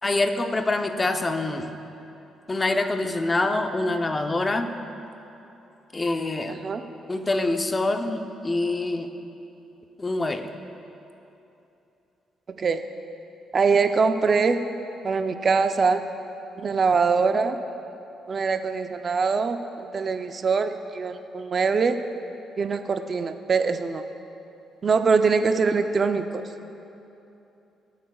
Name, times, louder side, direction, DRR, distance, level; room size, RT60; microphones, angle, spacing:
voice 1, 0.0-1.7 2.5-4.7 5.9-6.6 7.1-9.1 10.0-10.5, left 2 dB, 25° left, 7 dB, 0.7 m, -25 dB
voice 2, 6.5-6.8 12.6-12.8 13.5-14.6 15.0-16.0 16.6-17.6 18.3-22.0 22.6-24.0 24.8-26.4, right 5 dB, 45° right, 8 dB, 0.5 m, -23 dB
20.0 x 8.0 x 2.4 m, 2.9 s
cardioid pair, 90°, 0 cm